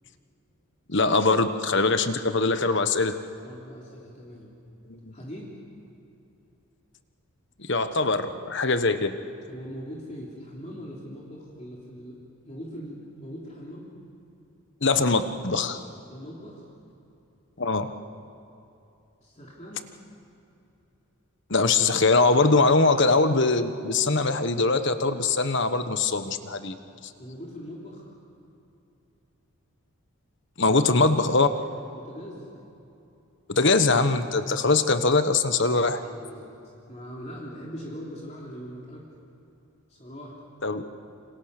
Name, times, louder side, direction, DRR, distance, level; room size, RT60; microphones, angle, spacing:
voice 1, 0.9-3.2 4.9-5.0 7.6-9.2 14.8-15.8 17.6-17.9 21.5-26.8 30.6-31.5 33.5-36.0 40.6-40.8, left 3 dB, 55° left, 9 dB, 1.3 m, -22 dB
voice 2, 3.4-4.5 5.1-5.6 9.5-12.2 12.4-13.9 16.1-16.6 19.2-19.9 27.2-28.1 31.1-31.3 31.9-32.5 35.4-35.7 36.0-36.6 36.9-39.1 39.9-40.3, equal, 30° left, -4 dB, 3.4 m, -41 dB
28.5 x 26.5 x 6.7 m, 2.8 s
head